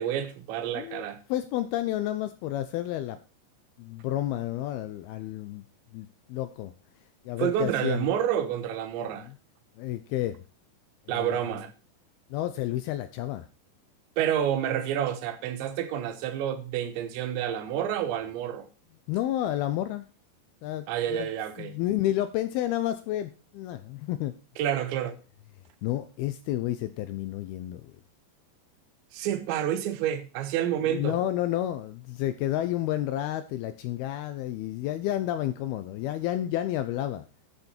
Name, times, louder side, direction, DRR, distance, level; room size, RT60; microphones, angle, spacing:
voice 1, 0.0-1.2 7.4-9.3 11.1-11.7 14.2-18.7 20.9-21.8 24.6-25.2 29.1-31.2, right 10 dB, 90° right, 3.4 m, -29 dB
voice 2, 1.3-3.2 3.8-5.6 5.9-6.7 7.3-8.1 9.2-9.3 9.8-10.4 11.1-11.4 12.3-13.5 19.1-20.1 20.6-21.3 21.6-24.3 25.8-27.8 30.9-37.3, left 13 dB, 85° left, 2.2 m, -30 dB
11.5 x 7.0 x 4.3 m
omnidirectional pair, 5.0 m